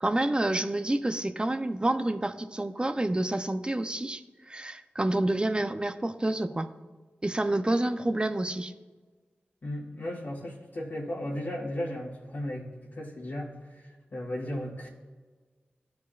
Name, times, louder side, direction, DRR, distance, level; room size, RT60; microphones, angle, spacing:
voice 1, 0.0-6.7 7.2-8.7, right 1 dB, 25° right, 10 dB, 0.5 m, -28 dB
voice 2, 9.6-12.6 12.9-14.9, left 1 dB, 60° left, -5 dB, 1.8 m, -35 dB
13.0 x 4.7 x 2.4 m, 1.4 s
cardioid pair, 40°, 4 cm